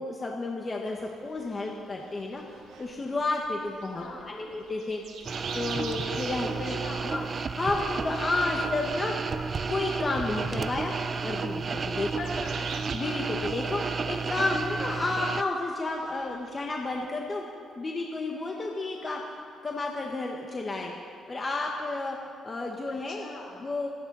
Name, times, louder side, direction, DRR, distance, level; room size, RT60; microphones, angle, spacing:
voice 1, 0.0-6.8 7.0-7.2 7.5-9.3 9.7-10.9 11.2-12.1 12.9-13.8 14.1-17.4 17.8-20.9 21.3-22.2 22.4-23.3 23.6-23.9, left 2 dB, 30° left, 0 dB, 1.5 m, -31 dB
sound 1, 0.9-17.1, right 5 dB, 80° right, 1.6 m, -47 dB
voice 2, 3.9-4.5 6.7-7.2 12.0-12.8 22.9-23.7, left 2 dB, 65° left, 0 dB, 3.5 m, -42 dB
sound 2, 5.3-15.4, right 5 dB, 40° right, 0.5 m, -32 dB
27.5 x 9.6 x 4.2 m, 2.2 s
cardioid pair, 90°, 0 cm